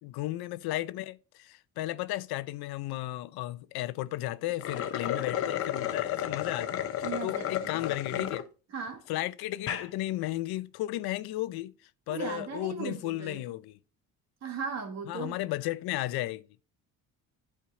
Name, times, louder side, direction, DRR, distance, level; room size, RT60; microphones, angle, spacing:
voice 1, 0.0-6.8 7.2-8.4 9.1-11.7 12.1-13.8 15.1-16.5, left 16 dB, 85° left, 0.6 m, -34 dB
sound 1, 4.5-8.4 8.9-9.0 9.5-9.9, left 10 dB, 40° left, 0.7 m, -32 dB
voice 2, 7.0-8.4 8.7-9.0 12.1-13.4 14.4-15.4, right 5 dB, 45° right, 1.8 m, -38 dB
11.5 x 4.7 x 3.6 m
cardioid pair, 175°, 36 cm